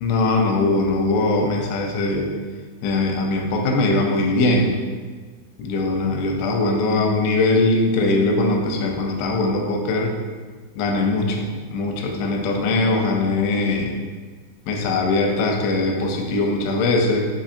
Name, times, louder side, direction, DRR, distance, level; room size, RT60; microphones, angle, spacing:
voice 1, 0.0-2.3 2.8-4.7 5.6-10.1 10.8-13.9 14.7-17.3, left 2 dB, 85° left, 2 dB, 3.0 m, -21 dB
7.2 x 2.8 x 2.6 m, 1.5 s
omnidirectional pair, 5.3 m